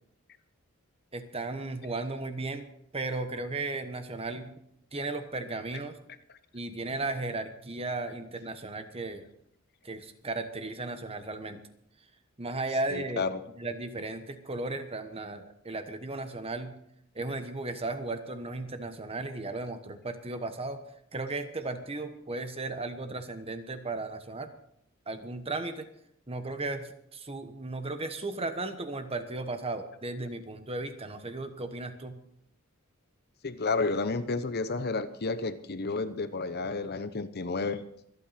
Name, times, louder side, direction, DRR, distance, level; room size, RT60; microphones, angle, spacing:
voice 1, 1.1-4.6 4.9-6.0 6.5-9.2 9.8-11.6 12.4-13.3 13.6-16.7 17.1-20.8 21.1-24.5 25.1-25.9 26.3-32.2, right 2 dB, 25° right, 8 dB, 1.2 m, -35 dB
voice 2, 12.9-13.4 33.4-37.8, left 3 dB, 50° left, 12 dB, 0.8 m, -31 dB
25.0 x 9.1 x 4.2 m, 0.72 s
head